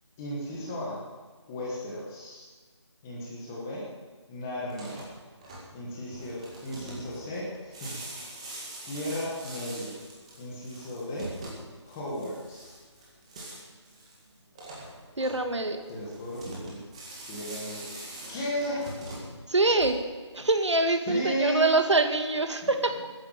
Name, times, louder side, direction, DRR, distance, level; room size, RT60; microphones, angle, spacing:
voice 1, 0.2-1.0 1.5-2.5 3.0-3.9 4.3-5.0 5.7-8.0 8.8-10.0 10.4-11.4 11.8-12.8 15.9-16.8 17.3-18.9 21.0-21.8 22.6-22.7, equal, 5° left, -4 dB, 1.0 m, -35 dB
sound 1, 4.7-20.3, right 1 dB, 15° right, 1.9 m, -43 dB
voice 2, 15.2-15.8 19.5-20.0 20.3-23.1, right 2 dB, 75° right, 7 dB, 2.2 m, -24 dB
14.5 x 10.5 x 8.8 m, 1.4 s
figure-of-eight pair, 175°, 15 cm